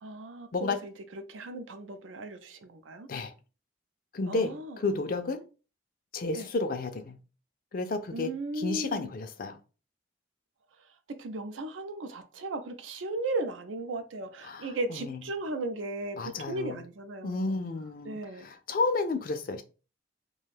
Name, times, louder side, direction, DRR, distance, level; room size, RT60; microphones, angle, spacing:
voice 1, 0.0-3.1 4.3-4.8 6.4-6.5 8.1-9.1 11.2-17.6 18.0-18.5, right 2 dB, 90° right, 0.5 m, -36 dB
voice 2, 4.1-5.4 6.1-7.2 7.7-9.6 14.4-15.2 16.2-16.7 17.2-19.6, left 3 dB, 50° left, 0.4 m, -32 dB
2.5 x 2.2 x 3.2 m
head